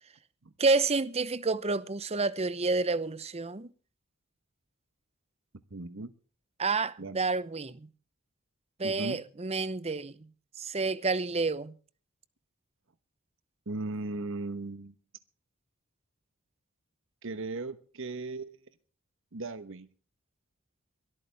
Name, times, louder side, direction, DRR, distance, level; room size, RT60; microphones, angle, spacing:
voice 1, 0.6-3.7 6.6-7.9 8.8-10.3 10.6-11.7, right 3 dB, 30° right, 0.8 m, -29 dB
voice 2, 5.7-6.1 7.0-7.2 8.8-9.2 13.7-14.9 17.2-18.6 19.3-19.9, right 3 dB, 65° right, 1.1 m, -37 dB
22.5 x 13.5 x 3.4 m
head